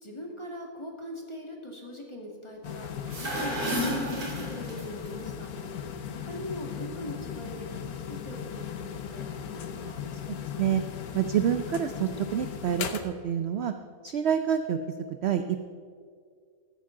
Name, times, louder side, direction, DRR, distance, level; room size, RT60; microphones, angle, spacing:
voice 1, 0.0-2.9 3.2-5.5 6.1-10.0, left 1 dB, 20° left, 0 dB, 1.8 m, -41 dB
sound 1, 2.6-13.0, left 8 dB, 80° left, 1.4 m, -37 dB
sound 2, 2.9-5.1, right 1 dB, 85° right, 3.3 m, -32 dB
voice 2, 10.3-10.8 11.1-13.7 14.0-14.8 15.2-15.6, right 9 dB, 60° right, 8 dB, 0.7 m, -27 dB
14.0 x 14.0 x 3.8 m, 2.1 s
omnidirectional pair, 1.6 m